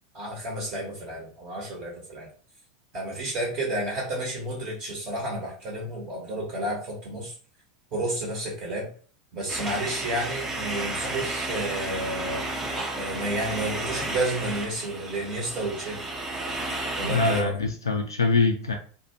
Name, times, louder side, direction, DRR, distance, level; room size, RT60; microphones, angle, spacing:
voice 1, 0.1-2.3 2.9-7.3 7.9-8.9 9.3-12.4 12.9-16.1 17.0-17.5, right 1 dB, 40° right, 1.1 m, -31 dB
sound 1, 9.5-17.4, right 2 dB, 15° right, 0.6 m, -32 dB
voice 2, 17.0-18.7, left 3 dB, 75° left, 0.4 m, -24 dB
2.6 x 2.2 x 2.9 m
figure-of-eight pair, 85°, 2 cm